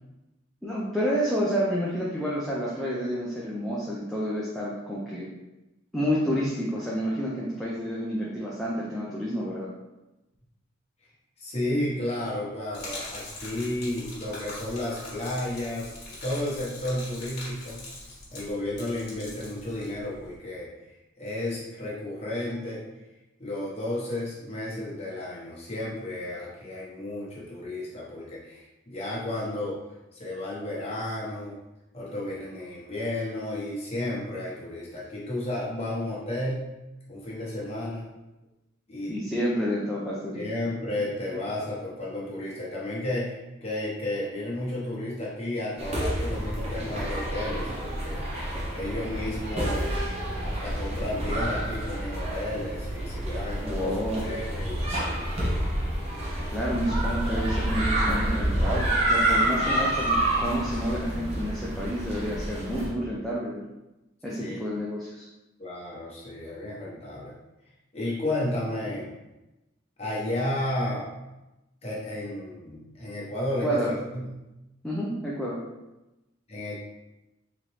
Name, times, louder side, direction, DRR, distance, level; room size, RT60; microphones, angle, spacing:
voice 1, 0.6-5.3 5.9-9.7 39.1-40.5 53.6-54.2 56.5-63.7 64.2-65.3 73.6-73.9 74.8-75.6, equal, ahead, -7 dB, 0.5 m, -29 dB
voice 2, 11.4-15.9 16.2-17.8 18.3-20.7 21.2-22.8 23.4-29.8 30.1-31.6 31.9-36.6 37.1-38.1 38.9-39.2 40.3-48.2 48.7-49.9 50.4-53.9 54.2-55.2 64.4-64.6 65.6-67.3 67.9-69.1 70.0-71.1 71.8-73.8 74.1-74.3 76.5-76.8, left 1 dB, 30° left, -6 dB, 1.0 m, -32 dB
Gurgling / Liquid, 12.7-20.4, left 2 dB, 50° left, 1.3 m, -42 dB
sound 1, 45.8-62.9, right 1 dB, 30° right, 0.8 m, -28 dB
4.1 x 3.0 x 3.2 m, 0.99 s
head